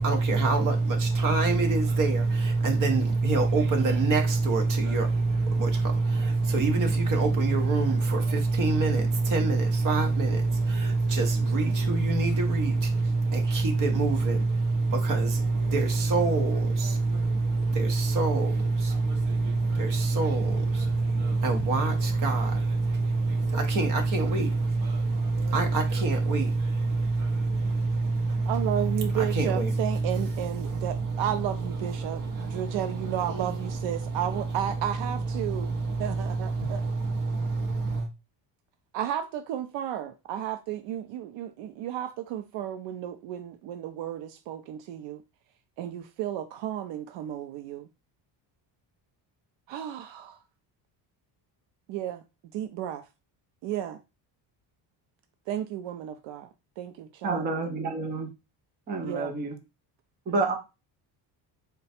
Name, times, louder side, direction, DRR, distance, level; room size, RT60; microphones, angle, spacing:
voice 1, 0.0-38.1, right 3 dB, 45° right, 1.0 m, -25 dB
voice 2, 28.5-35.7 36.0-36.8 38.9-45.2 45.8-47.9 49.7-50.4 51.9-52.2 52.5-53.0 53.6-54.0 55.5-56.5 56.8-57.4 59.0-59.3, right 11 dB, 75° right, 0.5 m, -33 dB
voice 3, 57.2-58.3 58.9-59.5 60.3-60.5, right 3 dB, 25° right, 0.5 m, -29 dB
3.8 x 2.2 x 4.2 m
cardioid pair, 180°, 45 cm